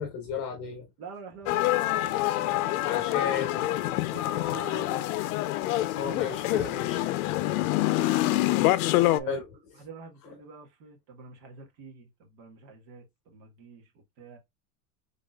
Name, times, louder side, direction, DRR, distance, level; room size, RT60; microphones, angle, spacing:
voice 1, 0.0-0.8 2.8-3.6 5.9-7.6 9.2-9.4, left 7 dB, 40° left, 1.1 m, -34 dB
voice 2, 1.0-3.2 4.1-5.3 7.8-8.2 9.1-9.4 9.7-14.4, right 5 dB, 55° right, 1.7 m, -46 dB
sound 1, 1.5-9.2, left 16 dB, 70° left, 0.6 m, -26 dB
4.1 x 3.6 x 2.3 m
supercardioid pair, 165°, 45 cm